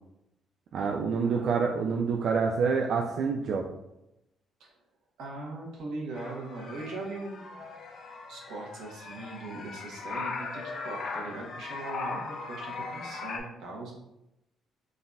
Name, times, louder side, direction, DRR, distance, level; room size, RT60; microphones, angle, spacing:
voice 1, 0.7-3.6, right 5 dB, 50° right, 1 dB, 0.3 m, -27 dB
voice 2, 5.2-7.7 8.3-13.9, right 2 dB, 85° right, -2 dB, 1.2 m, -40 dB
sound 1, 6.1-13.4, left 4 dB, 40° left, 0.5 m, -39 dB
3.9 x 3.9 x 2.3 m, 0.87 s
cardioid pair, 170°, 0 cm